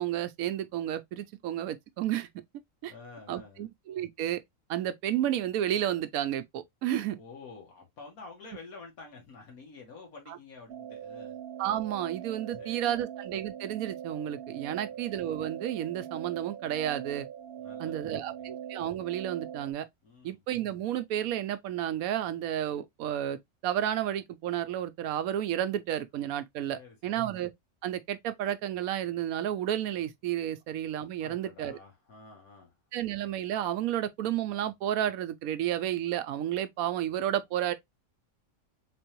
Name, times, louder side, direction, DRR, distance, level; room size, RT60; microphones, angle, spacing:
voice 1, 0.0-2.3 2.8-2.9 3.3-4.4 4.7-7.2 11.6-17.3 17.8-19.9 20.2-27.5 27.8-31.8 32.9-37.7, right 11 dB, 85° right, 1.0 m, -31 dB
voice 2, 2.9-3.7 7.1-11.4 12.5-13.0 14.7-14.9 17.6-18.5 20.0-20.4 26.7-27.3 31.2-32.7 37.6-37.7, left 4 dB, 85° left, 1.9 m, -50 dB
sound 1, 10.7-19.7, right 9 dB, 60° right, 0.7 m, -42 dB
3.9 x 3.4 x 2.9 m
omnidirectional pair, 1.5 m